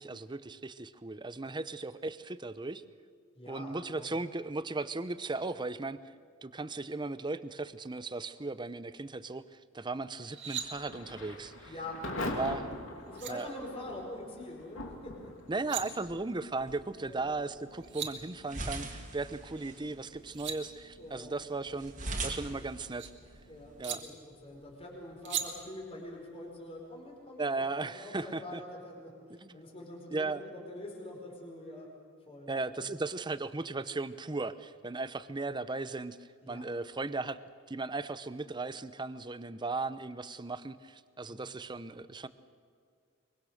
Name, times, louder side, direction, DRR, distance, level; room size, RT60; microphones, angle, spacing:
voice 1, 0.0-2.8 3.5-6.0 6.4-9.4 9.7-11.7 12.2-12.7 13.3-13.5 15.5-23.1 23.8-24.0 27.4-28.6 29.4-29.6 30.1-30.4 32.5-36.2 36.5-37.4 37.7-42.3, right 3 dB, 20° right, 14 dB, 0.7 m, -36 dB
voice 2, 3.3-4.2 11.6-12.6 13.1-15.3 17.0-17.3 21.0-21.3 23.5-24.1 24.4-27.5 27.9-31.9 32.3-32.9 36.4-36.6 41.3-41.4 41.7-41.9, left 1 dB, 30° left, -2 dB, 4.7 m, -45 dB
sound 1, 10.2-10.7 12.7-12.8 13.1-13.3 15.4-15.8 17.5-17.6 17.8-18.1 20.0-20.6 22.1-23.1 23.8-24.0 25.3-25.5, right 10 dB, 60° right, 2.2 m, -38 dB
Thunder / Rain, 10.6-27.3, left 1 dB, 70° left, 2.7 m, -46 dB
sound 2, 16.0-24.1, right 2 dB, 40° right, 2.7 m, -44 dB
23.5 x 23.0 x 6.5 m, 2.1 s
head